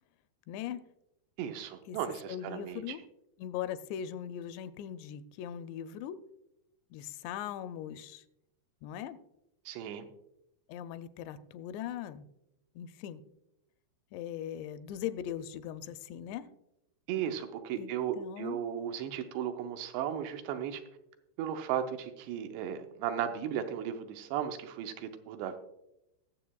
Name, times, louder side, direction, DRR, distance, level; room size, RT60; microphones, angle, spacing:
voice 1, 0.5-0.8 1.9-2.0 2.3-3.0 3.4-6.2 6.9-8.2 8.8-9.2 10.7-12.3 12.8-13.2 14.1-16.5 17.8-18.6, left 10 dB, 85° left, 11 dB, 2.7 m, -40 dB
voice 2, 1.4-3.0 9.7-10.1 17.1-20.8 21.4-25.6, right 9 dB, 85° right, 7 dB, 2.9 m, -35 dB
21.5 x 7.2 x 2.3 m, 0.86 s
omnidirectional pair, 4.8 m